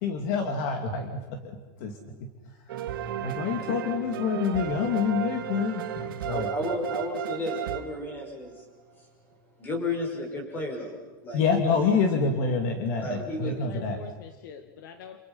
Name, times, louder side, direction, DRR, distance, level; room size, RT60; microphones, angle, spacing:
voice 1, 0.0-1.5 1.8-2.3 3.2-6.5 11.3-14.0, left 5 dB, 45° left, 4 dB, 3.0 m, -27 dB
sound 1, 2.7-8.6, right 11 dB, 85° right, 2.6 m, -34 dB
voice 2, 6.3-8.6 9.0-9.1 9.6-11.0 11.2-11.7 13.0-13.6, left 1 dB, 15° left, 2 dB, 6.2 m, -33 dB
voice 3, 13.0-15.2, left 6 dB, 65° left, 8 dB, 2.1 m, -45 dB
29.5 x 29.0 x 5.7 m, 1.2 s
supercardioid pair, 170°, 11 cm